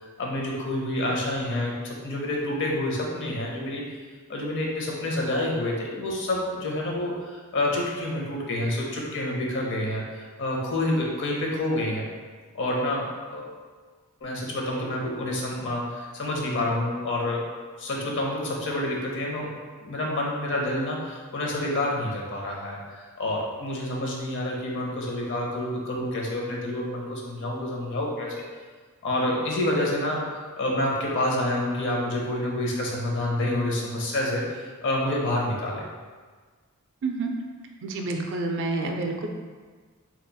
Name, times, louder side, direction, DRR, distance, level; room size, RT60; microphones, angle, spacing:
voice 1, 0.2-4.0 4.3-12.1 12.5-13.6 14.2-17.5 17.8-19.5 19.8-28.3 29.0-35.9, left 1 dB, 55° left, -2 dB, 0.7 m, -28 dB
voice 2, 37.0-37.3 37.8-39.3, right 3 dB, 55° right, 2 dB, 0.3 m, -28 dB
4.0 x 2.9 x 2.2 m, 1.5 s
head